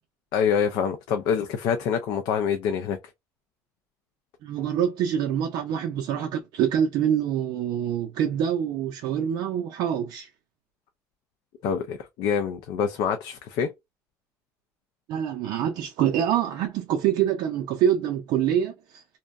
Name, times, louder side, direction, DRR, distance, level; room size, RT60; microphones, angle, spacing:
voice 1, 0.3-3.0 11.6-13.7, left 7 dB, 75° left, 0.4 m, -26 dB
voice 2, 4.4-10.3 15.1-19.0, right 9 dB, 75° right, 0.4 m, -25 dB
2.6 x 2.1 x 2.3 m
cardioid pair, 100°, 7 cm